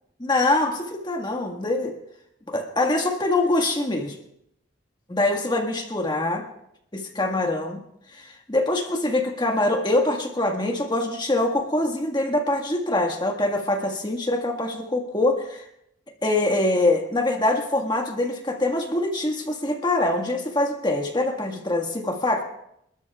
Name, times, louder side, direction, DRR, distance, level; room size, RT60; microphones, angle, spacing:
voice 1, 0.2-2.0 2.5-4.2 5.1-6.4 6.9-7.8 8.1-15.7 16.2-22.4, left 2 dB, 25° left, 3 dB, 1.7 m, -24 dB
29.5 x 13.0 x 2.4 m, 0.78 s
head